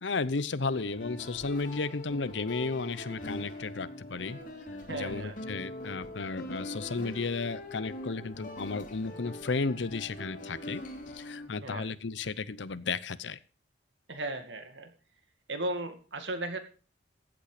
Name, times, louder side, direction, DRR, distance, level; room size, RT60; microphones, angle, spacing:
voice 1, 0.0-4.4 4.9-10.8 11.1-13.4, left 4 dB, 85° left, 17 dB, 0.8 m, -33 dB
sound 1, 0.6-11.5, left 1 dB, 50° left, 3.0 m, -42 dB
voice 2, 4.9-5.4 11.6-11.9 14.1-14.9 15.5-16.6, right 2 dB, 85° right, 8 dB, 2.3 m, -36 dB
15.0 x 8.6 x 5.0 m, 0.35 s
head